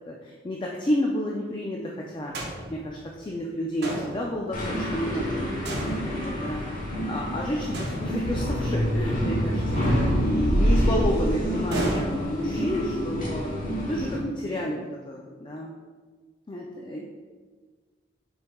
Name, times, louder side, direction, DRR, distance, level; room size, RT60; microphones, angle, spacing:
voice 1, 0.1-5.5 6.2-13.6 13.9-15.7 16.5-17.0, equal, 25° left, -1 dB, 0.3 m, -31 dB
sound 1, 2.3-3.2 3.8-4.7 5.7-6.8 7.7-8.7 9.7-10.8 11.7-12.8, right 1 dB, 60° right, 0.7 m, -34 dB
sound 2, 4.5-14.2, equal, 45° left, 1.0 m, -27 dB
voice 2, 10.2-10.9 16.9-17.0, equal, 65° left, -1 dB, 0.8 m, -46 dB
5.2 x 4.3 x 2.2 m, 1.4 s
head